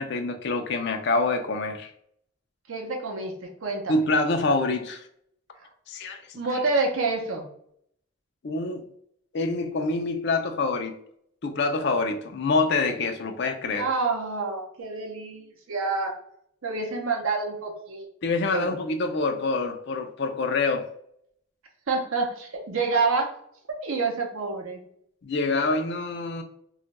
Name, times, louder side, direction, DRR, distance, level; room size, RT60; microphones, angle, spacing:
voice 1, 0.0-1.9 3.9-5.1 5.9-6.4 8.4-8.9 9.3-10.9 11.4-13.9 18.2-20.9 25.2-26.4, left 3 dB, 50° left, 0.4 m, -26 dB
voice 2, 2.7-4.0 5.6-5.7 6.3-7.5 13.7-16.1 16.6-18.1 18.5-18.8 21.9-23.3 23.8-24.8, right 3 dB, 70° right, 0.6 m, -28 dB
2.4 x 2.2 x 3.9 m
head